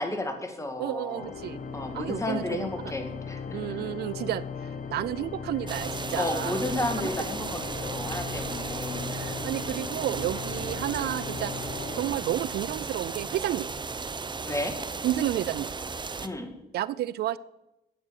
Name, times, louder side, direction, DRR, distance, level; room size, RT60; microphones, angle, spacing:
voice 1, 0.0-1.3 1.7-3.9 6.2-9.2 14.5-14.8 16.2-16.5, left 1 dB, 20° left, 6 dB, 2.2 m, -32 dB
voice 2, 0.8-1.6 1.9-2.7 3.5-4.4 4.9-6.6 9.1-11.5 11.9-13.7 15.0-15.7 16.7-17.4, right 13 dB, 75° right, 19 dB, 0.4 m, -31 dB
Organ, 1.1-12.9, left 5 dB, 55° left, 1.1 m, -38 dB
sound 1, 5.7-16.3, right 4 dB, 25° right, 0.8 m, -35 dB
9.9 x 8.1 x 6.5 m, 0.93 s
cardioid pair, 70°, 17 cm